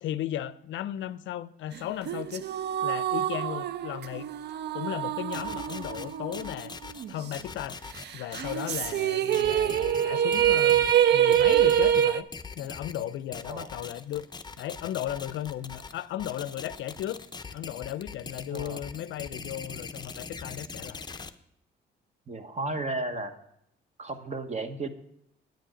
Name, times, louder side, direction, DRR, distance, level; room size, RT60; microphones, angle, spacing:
voice 1, 0.0-2.4 2.8-4.3 4.7-6.7 7.1-7.8 8.1-12.3 12.6-14.3 14.6-17.2 17.5-21.1, left 12 dB, 75° left, 0.4 m, -35 dB
sound 1, 2.1-6.7 7.0-7.1 8.3-12.2, right 10 dB, 60° right, 0.4 m, -25 dB
sound 2, 5.3-21.3, left 4 dB, 20° left, 0.6 m, -42 dB
voice 2, 18.5-18.8 22.3-23.4 24.0-24.9, right 2 dB, 35° right, 1.0 m, -33 dB
9.3 x 7.4 x 5.0 m
cardioid pair, 90°, 20 cm